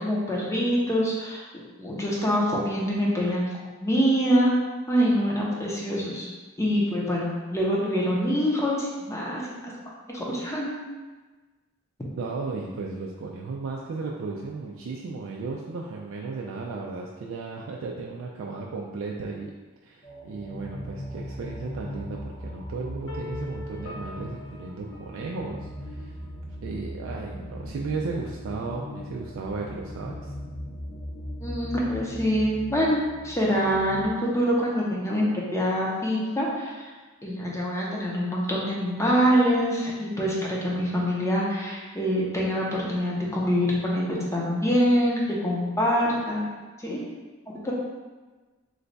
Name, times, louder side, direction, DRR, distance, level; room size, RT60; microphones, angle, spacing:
voice 1, 0.0-1.4 1.8-3.5 3.8-4.5 4.9-6.3 6.6-9.7 10.1-10.7 31.4-33.0 33.2-36.9 37.2-46.5 46.8-47.0 47.6-47.7, equal, 15° left, -4 dB, 0.6 m, -25 dB
voice 2, 12.2-19.5 19.8-26.2 26.6-30.3, right 4 dB, 70° right, -1 dB, 0.3 m, -35 dB
sound 1, 20.0-34.0, left 1 dB, 45° left, 0.8 m, -38 dB
sound 2, 23.1-26.0, left 1 dB, 85° left, 0.6 m, -43 dB
3.1 x 2.2 x 3.9 m, 1.3 s
head